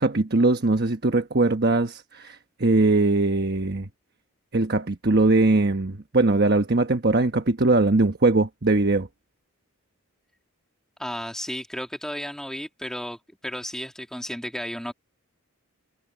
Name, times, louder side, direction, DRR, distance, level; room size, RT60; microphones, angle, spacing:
voice 1, 0.0-3.9 4.5-9.1, right 2 dB, 45° right, 1.1 m, -21 dB
voice 2, 11.0-14.9, equal, 5° left, 2.2 m, -33 dB
head